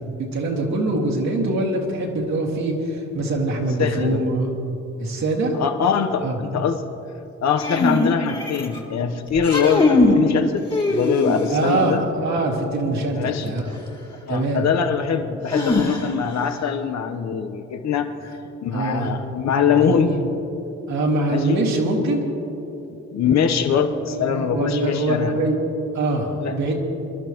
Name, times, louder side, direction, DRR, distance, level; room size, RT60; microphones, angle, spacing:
voice 1, 0.3-4.5 5.0-5.6 6.2-6.4 11.5-13.6 14.3-14.7 18.7-19.1 19.8-20.2 20.9-22.2 23.7-25.6 25.9-26.7, right 2 dB, 65° right, -3 dB, 2.5 m, -23 dB
voice 2, 3.8-4.2 5.5-6.8 7.4-12.0 13.1-13.5 14.3-20.2 21.3-21.6 23.1-25.3 26.4-26.7, left 7 dB, 65° left, 6 dB, 1.1 m, -23 dB
sound 1, 7.6-8.8 9.3-10.2 10.7-11.6 13.6-13.7 15.5-16.3, left 2 dB, 20° left, 2.0 m, -20 dB
25.0 x 11.5 x 3.1 m, 3.0 s
cardioid pair, 90°, 30 cm